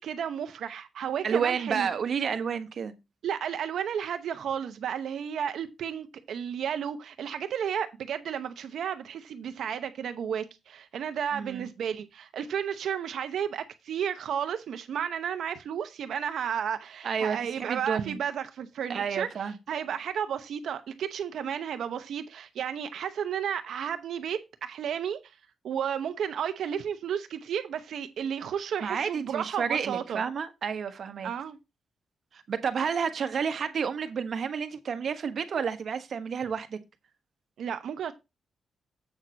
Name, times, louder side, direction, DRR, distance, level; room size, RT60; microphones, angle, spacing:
voice 1, 0.0-1.9 3.2-19.3 19.7-25.2 25.6-30.2 31.2-31.6 37.6-38.1, right 8 dB, 80° right, 0.8 m, -33 dB
voice 2, 1.2-2.9 11.3-11.7 17.0-18.2 18.9-19.6 28.8-31.3 32.3-36.8, right 6 dB, 60° right, 1.2 m, -30 dB
8.1 x 6.1 x 4.0 m
cardioid pair, 105°, 0 cm